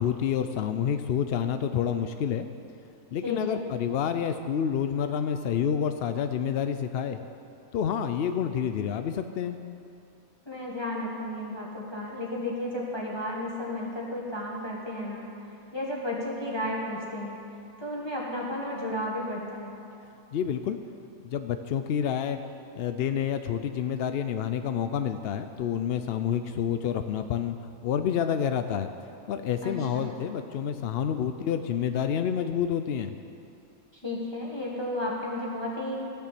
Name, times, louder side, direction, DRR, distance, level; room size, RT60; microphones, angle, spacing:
voice 1, 0.0-2.5 3.1-7.2 7.7-9.6 20.3-20.8 21.2-22.4 22.8-27.6 27.8-28.9 29.3-33.1, left 8 dB, 70° left, 8 dB, 0.5 m, -28 dB
voice 2, 3.2-3.6 10.5-15.3 15.7-17.4 17.8-19.8 29.6-30.1 33.9-36.1, left 1 dB, 20° left, -4 dB, 1.8 m, -33 dB
14.5 x 7.0 x 7.6 m, 2.6 s
omnidirectional pair, 1.5 m